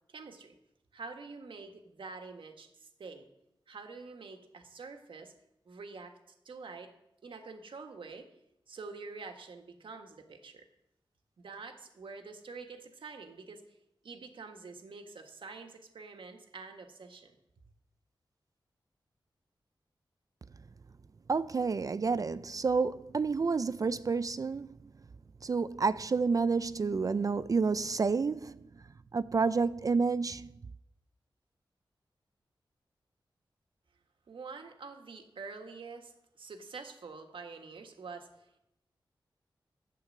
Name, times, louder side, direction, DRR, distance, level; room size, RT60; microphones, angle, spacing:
voice 1, 0.1-0.5 0.9-3.3 3.7-5.3 5.6-6.1 6.4-6.9 7.2-8.3 8.7-10.6 11.4-13.6 14.0-17.3 34.3-38.6, right 4 dB, 85° right, 1.6 m, -46 dB
voice 2, 21.3-24.8 25.4-28.6 29.1-30.5, right 4 dB, 45° right, 0.3 m, -29 dB
12.0 x 8.4 x 7.4 m
wide cardioid pair, 105°, 9 cm